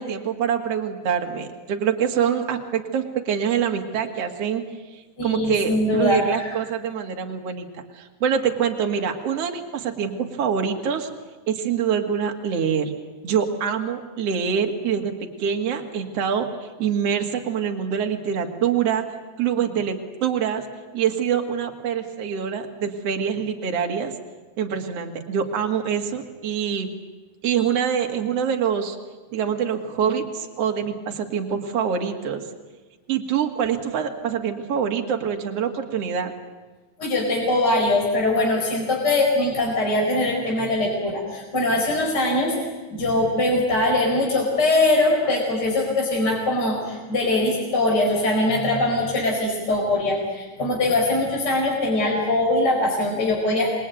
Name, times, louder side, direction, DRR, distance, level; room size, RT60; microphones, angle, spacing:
voice 1, 0.0-4.6 4.9-11.1 11.5-12.9 13.2-19.0 19.4-20.6 20.9-24.1 24.6-26.9 27.4-29.0 29.3-32.4 33.1-36.3, right 7 dB, 55° right, 3 dB, 3.0 m, -25 dB
voice 2, 5.2-6.6 37.0-42.6 42.9-53.8, left 2 dB, 30° left, -1 dB, 5.2 m, -22 dB
27.0 x 22.0 x 9.3 m, 1.3 s
omnidirectional pair, 3.5 m